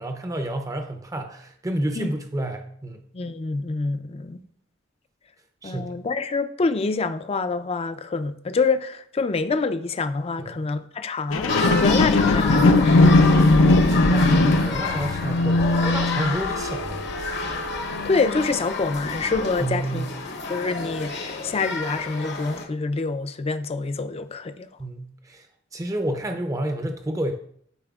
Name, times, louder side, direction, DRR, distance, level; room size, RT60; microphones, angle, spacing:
voice 1, 0.0-3.0 5.6-5.9 10.4-10.7 14.1-17.1 19.6-20.1 24.8-25.5 25.7-27.3, right 1 dB, 15° right, 0.6 m, -30 dB
voice 2, 3.1-4.4 5.6-13.2 18.1-20.1 20.5-24.7, left 4 dB, 30° left, 0.4 m, -26 dB
sound 1, 11.3-18.7 19.3-19.4, left 2 dB, 85° left, 0.6 m, -20 dB
sound 2, 11.5-22.6, left 4 dB, 60° left, 0.9 m, -30 dB
12.5 x 4.2 x 2.4 m
head